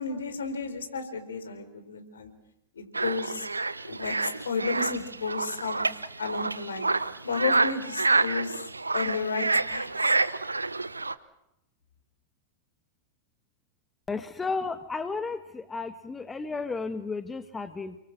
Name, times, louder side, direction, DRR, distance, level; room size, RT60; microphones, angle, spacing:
voice 1, 0.0-2.3 2.8-3.5 3.9-5.8 6.2-6.9 7.2-8.6 8.9-9.9, left 4 dB, 70° left, 7 dB, 4.3 m, -32 dB
sound 1, 2.9-11.1, right 3 dB, 80° right, 0.8 m, -28 dB
voice 2, 14.1-18.0, left 4 dB, 15° left, 10 dB, 1.5 m, -33 dB
30.0 x 23.5 x 6.2 m, 0.87 s
figure-of-eight pair, 90°, 0 cm